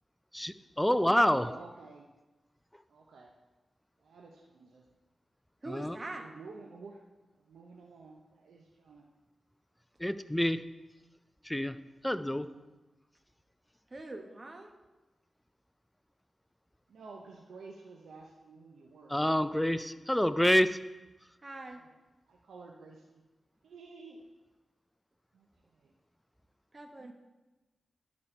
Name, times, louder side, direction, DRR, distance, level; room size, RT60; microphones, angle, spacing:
voice 1, 0.3-1.6 5.7-6.0 10.0-10.6 11.4-12.5 19.1-20.8, equal, 10° left, 12 dB, 0.4 m, -28 dB
voice 2, 0.9-2.1 2.9-3.3 4.0-4.9 6.2-7.0 7.4-9.0 12.5-12.6 16.9-19.3 21.7-21.9 22.3-23.2 23.6-24.2 25.3-25.5 25.7-25.9 27.0-27.1, right 3 dB, 90° right, 0 dB, 0.6 m, -50 dB
voice 3, 5.6-6.3 13.9-14.7 21.4-21.8 26.7-27.1, right 2 dB, 40° right, 5 dB, 1.0 m, -43 dB
11.0 x 4.2 x 4.3 m, 1.1 s
cardioid pair, 55°, 0 cm